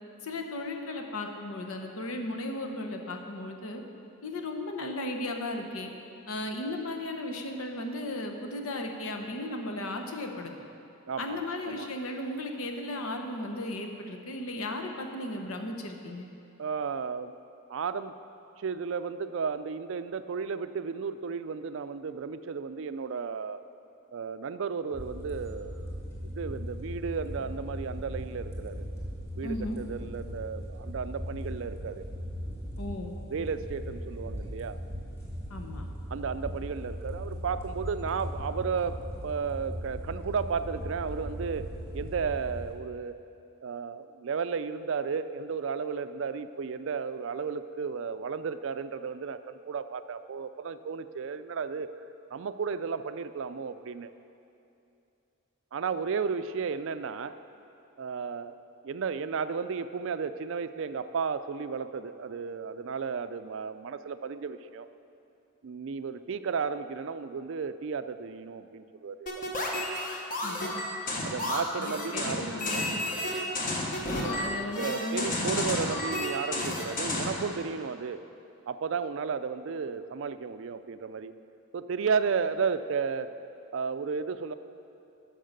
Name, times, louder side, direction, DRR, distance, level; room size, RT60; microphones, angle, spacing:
voice 1, 0.2-3.8 4.2-5.9 6.3-10.5 11.2-16.3 29.4-29.8 32.8-33.2 35.5-35.9 70.4-70.7 71.8-73.0 74.1-75.8, left 1 dB, 85° left, 4 dB, 1.0 m, -35 dB
voice 2, 11.1-11.9 16.6-17.3 17.7-18.1 18.6-23.6 24.1-28.9 29.4-32.0 33.3-34.8 36.1-43.2 43.6-51.9 52.3-54.1 55.7-57.4 58.0-58.6 58.8-64.9 65.6-69.4 71.2-72.9 74.2-74.4 74.8-78.2 78.7-81.3 81.7-83.3 83.7-84.5, right 5 dB, 65° right, 12 dB, 0.4 m, -33 dB
sound 1, 24.9-42.7, equal, 15° left, 1.9 m, -38 dB
sound 2, 69.3-77.4, left 1 dB, 40° left, 1.3 m, -31 dB
10.0 x 6.5 x 6.6 m, 2.7 s
head